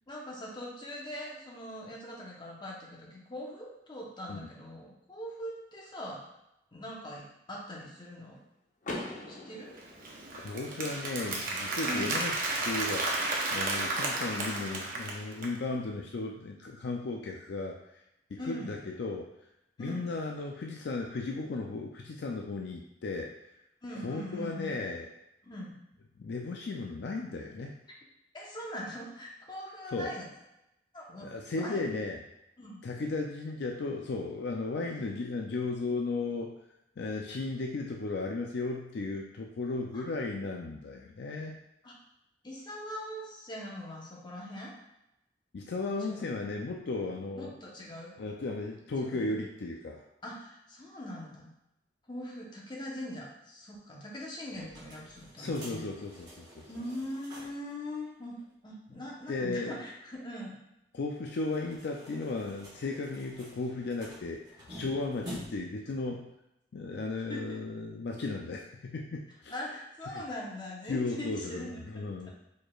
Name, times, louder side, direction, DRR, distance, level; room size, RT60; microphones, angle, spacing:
voice 1, 0.1-6.2 6.7-8.4 9.3-9.8 11.8-12.1 18.4-18.8 19.8-20.1 23.8-24.8 25.4-25.7 28.3-30.3 30.9-31.3 31.5-31.9 32.6-32.8 39.9-40.3 41.8-41.9 42.4-44.7 46.1-46.3 47.3-48.2 49.0-49.2 50.2-51.5 52.1-55.9 56.7-58.3 58.6-60.6 67.3-67.6 69.5-72.3, left 1 dB, 25° left, -3 dB, 1.0 m, -41 dB
Car / Door, 8.8-10.8, left 1 dB, 45° left, 0.9 m, -41 dB
Applause, 9.8-15.6, right 2 dB, 50° right, 0.8 m, -33 dB
voice 2, 10.4-12.4 12.6-18.0 18.3-19.3 19.8-23.4 24.0-25.1 26.2-27.8 29.9-30.1 31.2-32.2 32.8-36.5 37.0-41.6 45.5-47.5 48.2-50.1 55.4-56.7 59.3-59.8 60.9-66.3 66.7-69.5 70.1-70.2 70.9-72.3, left 3 dB, 65° left, 1 dB, 0.4 m, -35 dB
sound 1, 54.5-57.7 58.0-58.1 58.4-58.5 61.2-65.8, equal, 25° right, 1.4 m, -49 dB
4.8 x 4.2 x 2.4 m, 0.85 s
head